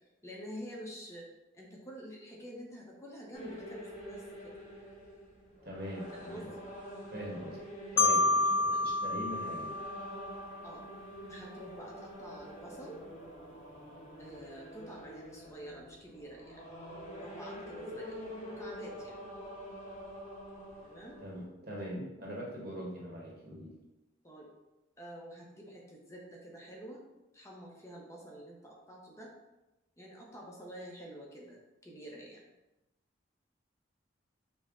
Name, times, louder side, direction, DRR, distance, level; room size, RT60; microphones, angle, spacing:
voice 1, 0.2-1.3 1.5-3.8 4.1-4.5 6.2-6.6 8.6-8.8 10.6-10.9 11.3-13.0 14.2-16.6 17.1-18.2 18.6-19.2 20.8-21.2 24.2-24.5 25.0-27.1 27.3-29.3 30.0-32.4, equal, 15° left, -2 dB, 0.6 m, -48 dB
sound 1, 3.3-21.4, equal, 40° left, 1.1 m, -47 dB
voice 2, 5.6-6.5 7.1-7.6 7.9-9.7 21.2-23.7, equal, 50° right, -3 dB, 1.1 m, -42 dB
Marimba xylophone, 8.0-10.8, left 3 dB, 70° left, 0.3 m, -29 dB
5.4 x 2.1 x 3.6 m, 1.0 s
head